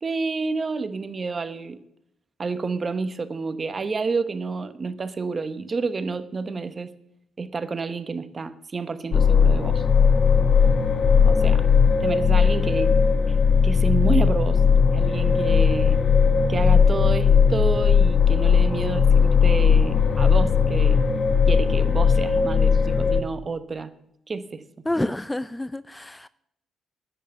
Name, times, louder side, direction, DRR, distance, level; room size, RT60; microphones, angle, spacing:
voice 1, 0.0-1.8 2.4-6.9 7.4-9.8 11.3-11.6 12.0-13.0 13.3-13.4 13.6-14.6 14.9-16.0 16.5-21.0 21.5-23.9 24.3-24.6, right 4 dB, 35° right, 12 dB, 1.0 m, -29 dB
sound 1, 9.1-23.2, left 6 dB, 50° left, 1.2 m, -18 dB
voice 2, 11.1-11.6 24.9-26.3, left 1 dB, 10° left, 16 dB, 0.4 m, -29 dB
10.5 x 9.2 x 6.9 m, 0.79 s
cardioid pair, 80°, 0 cm